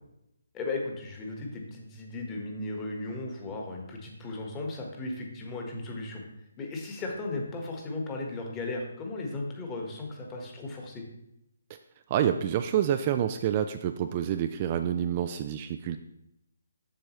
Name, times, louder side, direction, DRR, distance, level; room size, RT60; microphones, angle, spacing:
voice 1, 0.5-6.2 6.6-11.0, left 2 dB, 20° left, 0 dB, 1.4 m, -36 dB
voice 2, 12.1-16.0, right 10 dB, 30° right, 8 dB, 0.3 m, -28 dB
7.5 x 6.5 x 3.1 m, 0.83 s
figure-of-eight pair, 145°, 0 cm